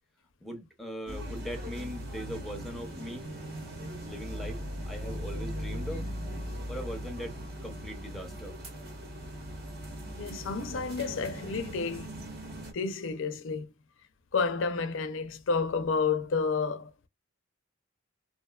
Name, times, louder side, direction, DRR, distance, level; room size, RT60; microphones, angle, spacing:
voice 1, 0.4-3.2 4.0-6.1 6.7-7.4 7.6-8.5, equal, ahead, 0.6 m, -40 dB
sound 1, 1.1-12.7, equal, 50° right, 1.0 m, -39 dB
Bowed string instrument, 2.6-7.3, equal, 80° right, 1.4 m, -52 dB
voice 2, 10.2-12.2 12.7-13.7 14.3-16.9, left 4 dB, 65° left, 0.4 m, -30 dB
2.5 x 2.2 x 2.2 m
head